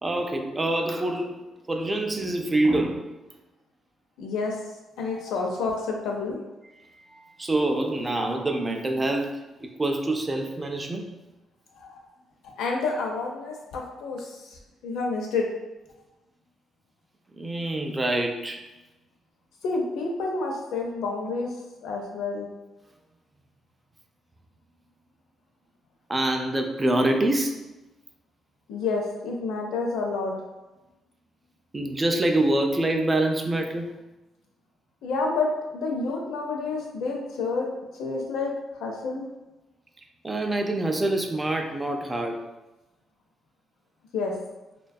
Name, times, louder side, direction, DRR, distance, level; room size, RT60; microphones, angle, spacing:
voice 1, 0.0-3.0 7.0-11.1 17.4-18.6 26.1-27.5 31.7-33.9 40.2-42.4, right 1 dB, 20° right, 4 dB, 0.3 m, -26 dB
voice 2, 4.2-4.6 5.0-6.4 11.7-12.0 12.6-14.6 14.8-15.5 19.6-21.5 21.8-22.5 28.7-30.4 35.0-38.5 38.8-39.2 44.1-44.4, left 3 dB, 85° left, 0 dB, 0.5 m, -29 dB
2.6 x 2.2 x 2.2 m, 1.0 s
cardioid pair, 90°, 0 cm